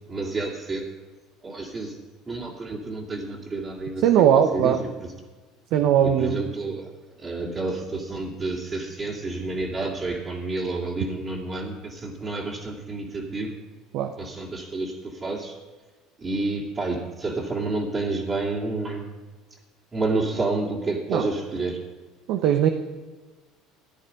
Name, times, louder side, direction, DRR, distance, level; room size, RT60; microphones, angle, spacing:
voice 1, 0.1-0.8 1.4-2.0 2.3-4.0 4.5-4.8 6.0-6.9 7.2-13.5 14.2-15.5 16.2-19.1 19.9-21.8, right 3 dB, 30° right, -4 dB, 2.4 m, -29 dB
voice 2, 4.0-4.8 5.7-6.4 13.9-14.1 21.1-21.3 22.3-22.7, right 9 dB, 65° right, 7 dB, 0.8 m, -19 dB
13.5 x 9.8 x 5.3 m, 1.3 s
hypercardioid pair, 75°, 0 cm